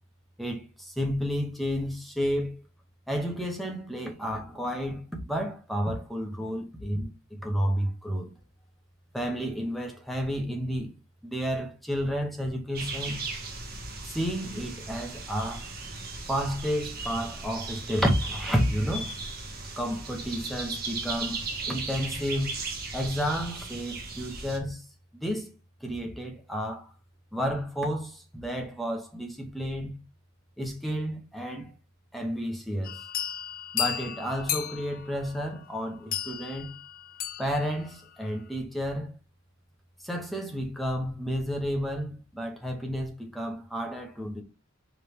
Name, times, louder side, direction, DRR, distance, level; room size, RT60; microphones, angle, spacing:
voice 1, 0.4-2.6 3.1-7.1 7.4-8.3 9.1-10.9 11.2-13.2 14.0-15.7 16.3-19.1 19.8-21.4 21.7-22.6 22.9-24.8 25.1-25.5 25.8-26.9 27.3-29.9 30.6-31.7 32.1-33.0 33.7-36.7 37.4-39.1 40.0-44.4, equal, ahead, 0.9 m, -31 dB
sound 1, 12.7-24.6, right 3 dB, 45° right, 1.2 m, -37 dB
sound 2, 32.8-37.9, left 9 dB, 45° left, 0.4 m, -34 dB
5.0 x 3.3 x 3.2 m
head